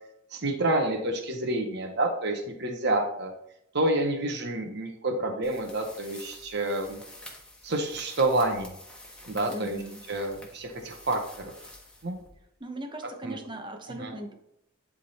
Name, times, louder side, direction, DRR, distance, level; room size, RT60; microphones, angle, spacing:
voice 1, 0.3-3.3 3.7-7.0 7.6-8.8 9.3-9.8 10.1-11.5 12.0-12.2 13.2-13.4 13.9-14.1, right 2 dB, 55° right, 3 dB, 1.1 m, -28 dB
sound 1, 5.4-12.6, left 1 dB, 5° left, 1.4 m, -48 dB
voice 2, 9.5-10.0 12.6-14.3, right 1 dB, 25° right, 5 dB, 0.9 m, -38 dB
11.0 x 3.8 x 4.2 m, 0.76 s
head